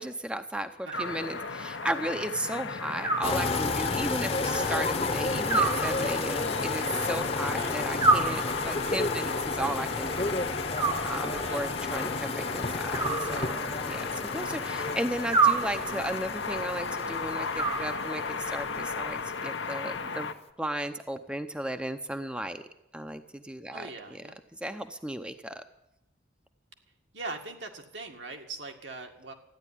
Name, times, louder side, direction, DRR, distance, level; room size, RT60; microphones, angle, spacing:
voice 1, 0.0-10.3 11.1-14.1 14.3-20.3 20.6-22.6 22.9-24.2 24.5-25.6, right 1 dB, 5° right, 8 dB, 0.6 m, -35 dB
sound 1, 0.9-20.3, left 4 dB, 80° left, 1.1 m, -35 dB
Animal, 0.9-1.8 3.0-4.0 5.5-6.6 8.0-9.0 10.7-11.7 12.9-14.0 15.3-16.2 17.6-18.5, right 4 dB, 25° right, 1.0 m, -29 dB
sound 2, 3.2-19.5 19.8-20.1, left 3 dB, 35° left, 1.0 m, -32 dB
voice 2, 7.5-7.8 11.4-11.7 19.9-20.3 23.7-24.4 27.1-29.3, right 3 dB, 75° right, 3 dB, 2.0 m, -41 dB
14.0 x 10.0 x 10.0 m, 0.86 s
head